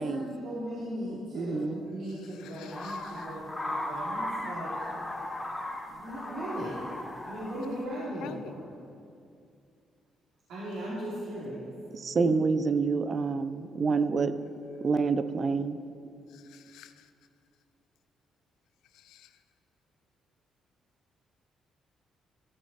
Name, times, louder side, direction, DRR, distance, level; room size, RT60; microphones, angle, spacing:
voice 1, 0.0-4.7 5.0-6.8 7.2-8.6 10.5-11.7, equal, 85° right, -10 dB, 2.8 m, -38 dB
voice 2, 1.3-1.8 11.9-14.4 14.8-15.8, right 4 dB, 45° right, 11 dB, 0.5 m, -27 dB
voice 3, 2.4-3.2 8.2-8.4 16.3-17.1 18.9-19.3, left 11 dB, 90° left, 12 dB, 0.4 m, -48 dB
sound 1, 2.7-7.8, left 1 dB, 20° left, 1.3 m, -37 dB
14.0 x 6.6 x 4.2 m, 2.4 s
cardioid pair, 90°, 0 cm